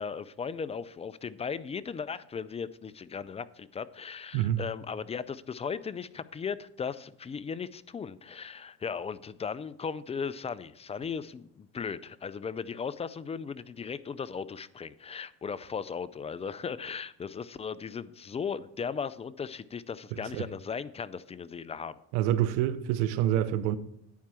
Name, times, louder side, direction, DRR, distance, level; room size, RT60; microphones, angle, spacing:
voice 1, 0.0-21.9, left 6 dB, 15° left, 0.3 m, -37 dB
voice 2, 22.1-23.8, right 12 dB, 80° right, 0.9 m, -27 dB
10.5 x 4.6 x 7.5 m
supercardioid pair, 90°, 40 cm